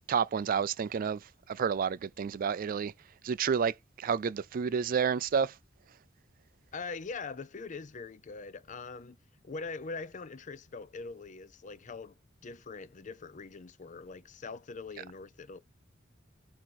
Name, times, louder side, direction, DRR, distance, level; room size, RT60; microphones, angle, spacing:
voice 1, 0.1-1.2 1.5-2.9 3.2-5.5, right 6 dB, 45° right, 0.3 m, -30 dB
voice 2, 6.7-9.2 9.4-12.1 12.4-15.6, left 4 dB, 40° left, 0.5 m, -42 dB
7.6 x 2.9 x 4.6 m
head